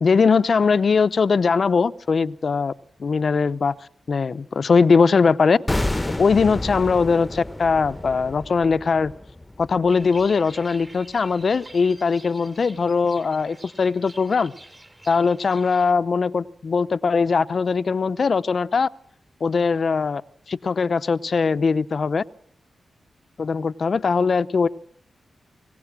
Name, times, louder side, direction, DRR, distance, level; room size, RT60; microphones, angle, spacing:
voice 1, 0.0-2.7 3.0-3.7 4.1-5.6 6.2-9.1 9.6-14.5 15.1-18.9 19.4-20.2 20.5-22.2 23.4-24.7, left 5 dB, 65° left, 15 dB, 0.8 m, -20 dB
sound 1, 5.7-10.7 10.9-11.1, left 1 dB, 15° left, 1.1 m, -30 dB
sound 2, 9.9-15.9, right 1 dB, 25° right, 2.8 m, -46 dB
24.0 x 17.5 x 6.1 m, 0.62 s
cardioid pair, 50°, 0 cm